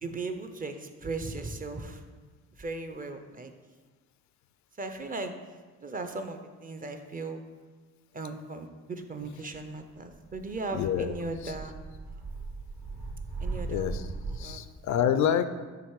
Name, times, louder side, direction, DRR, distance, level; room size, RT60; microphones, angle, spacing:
voice 1, 0.0-2.0 2.6-3.5 4.8-5.4 5.8-7.4 8.1-11.7 13.4-14.1 14.4-14.6, right 3 dB, 30° right, 7 dB, 0.6 m, -37 dB
sound 1, 10.1-14.4, right 3 dB, 80° right, 1.7 m, -38 dB
voice 2, 10.7-11.1 11.4-11.5 13.7-14.1 14.4-15.5, left 9 dB, 70° left, 11 dB, 0.4 m, -27 dB
7.6 x 2.9 x 4.7 m, 1.4 s
cardioid pair, 90°, 30 cm